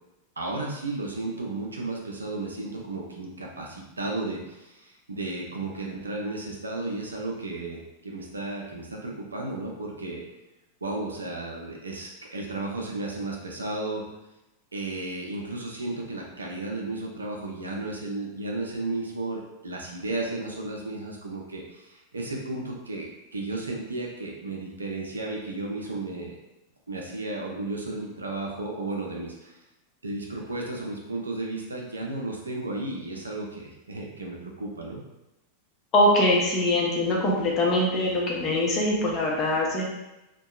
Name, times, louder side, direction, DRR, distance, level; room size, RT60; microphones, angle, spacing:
voice 1, 0.4-10.2 10.8-14.0 14.7-26.4 26.9-29.6 30.0-35.0, right 2 dB, 75° right, -1 dB, 0.4 m, -34 dB
voice 2, 35.9-39.8, left 1 dB, 30° left, -3 dB, 0.7 m, -23 dB
2.7 x 2.2 x 2.3 m, 0.94 s
figure-of-eight pair, 90°, 0 cm